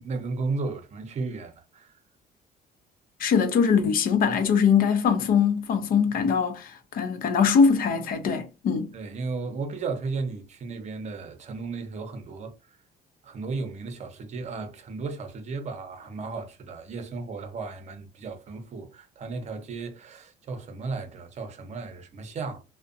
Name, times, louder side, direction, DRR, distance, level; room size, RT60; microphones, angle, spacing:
voice 1, 0.0-1.9 8.9-12.8 13.2-22.6, right 4 dB, 45° right, 0.7 m, -34 dB
voice 2, 3.2-8.9, left 6 dB, 60° left, 0.6 m, -22 dB
2.5 x 2.1 x 2.5 m
cardioid pair, 110°, 17 cm